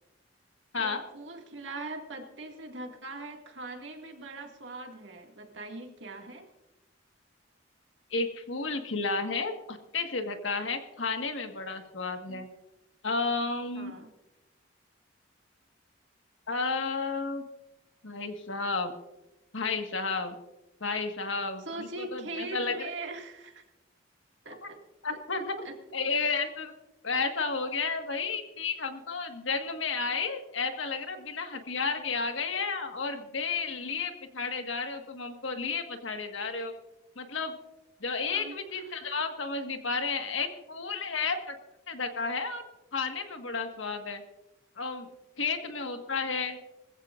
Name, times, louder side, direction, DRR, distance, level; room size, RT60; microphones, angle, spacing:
voice 1, 0.7-6.5 12.3-12.5 13.7-14.1 21.6-23.6 24.5-24.8 25.1-25.8 26.2-26.4 38.3-38.6 38.9-39.0, right 2 dB, 70° right, 3 dB, 2.1 m, -41 dB
voice 2, 8.1-12.5 13.0-13.9 16.5-17.5 18.0-18.9 19.5-20.4 20.8-22.9 24.6-24.7 25.0-25.6 25.9-26.7 27.0-36.7 37.1-37.6 38.0-41.5 41.9-42.6 42.9-44.2 44.8-45.1 45.4-46.6, left 4 dB, 85° left, 6 dB, 1.6 m, -32 dB
21.0 x 15.0 x 2.5 m, 0.98 s
head